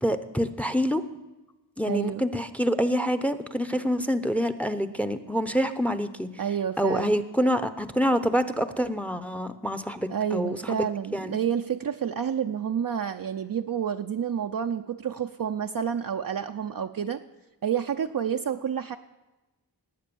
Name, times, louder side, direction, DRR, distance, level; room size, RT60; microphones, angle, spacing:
voice 1, 0.0-1.0 1.8-6.3 6.8-10.8 11.1-11.4, equal, 5° left, 11 dB, 0.8 m, -26 dB
voice 2, 1.9-2.2 6.4-7.2 10.1-17.2 17.6-19.0, right 8 dB, 50° right, 4 dB, 0.6 m, -29 dB
18.5 x 8.7 x 7.0 m, 1.1 s
wide cardioid pair, 70°, 44 cm